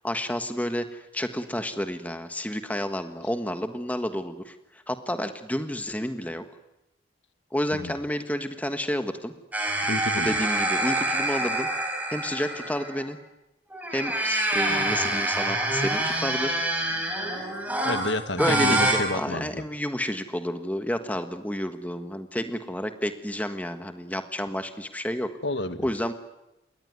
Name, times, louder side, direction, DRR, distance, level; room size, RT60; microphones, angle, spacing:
voice 1, 0.0-4.6 4.9-6.4 7.5-9.3 10.2-11.7 12.1-13.2 13.9-16.5 18.4-25.3 25.8-26.1, equal, 10° left, 8 dB, 1.4 m, -30 dB
sound 1, 9.5-13.1 13.7-18.9, right 1 dB, 10° right, 5.9 m, -26 dB
voice 2, 9.9-10.4 17.8-19.6 25.4-25.9, left 2 dB, 70° left, 10 dB, 1.6 m, -30 dB
28.0 x 22.0 x 9.5 m, 0.94 s
head